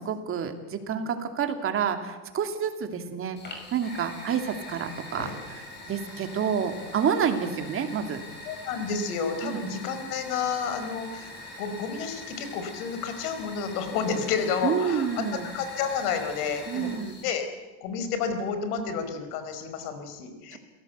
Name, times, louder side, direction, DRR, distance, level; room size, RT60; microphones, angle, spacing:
voice 1, 0.0-3.4 3.7-8.2 9.4-9.7 14.6-15.5 16.7-17.2 20.5-20.6, right 7 dB, 25° right, 6 dB, 2.6 m, -29 dB
Fire, 3.4-17.2, left 2 dB, 20° left, 6.5 m, -43 dB
voice 2, 8.5-15.1 15.4-17.5 17.8-20.6, left 6 dB, 70° left, 8 dB, 5.0 m, -30 dB
29.5 x 17.0 x 8.2 m, 1.1 s
supercardioid pair, 140°, 46 cm